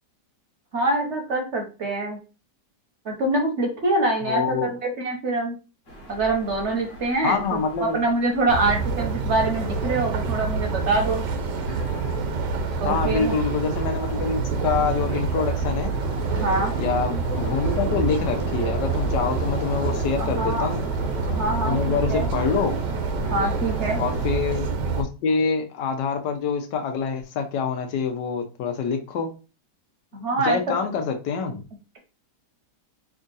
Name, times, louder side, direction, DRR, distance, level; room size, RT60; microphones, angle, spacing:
voice 1, 0.7-2.2 3.0-5.6 6.1-11.2 12.8-13.4 16.3-16.7 20.2-20.7 21.3-22.3 23.3-24.0 30.1-30.6, right 2 dB, 55° right, 2 dB, 0.9 m, -25 dB
voice 2, 4.3-4.7 7.2-8.0 12.8-15.9 16.8-20.8 21.6-22.8 24.0-24.7 25.0-29.3 30.4-31.6, left 5 dB, 90° left, 5 dB, 1.4 m, -26 dB
sound 1, 5.9-24.4, right 1 dB, 40° left, 1.2 m, -37 dB
sound 2, 8.5-25.0, right 4 dB, 85° right, 1.4 m, -27 dB
3.6 x 2.4 x 3.9 m, 0.32 s
omnidirectional pair, 1.8 m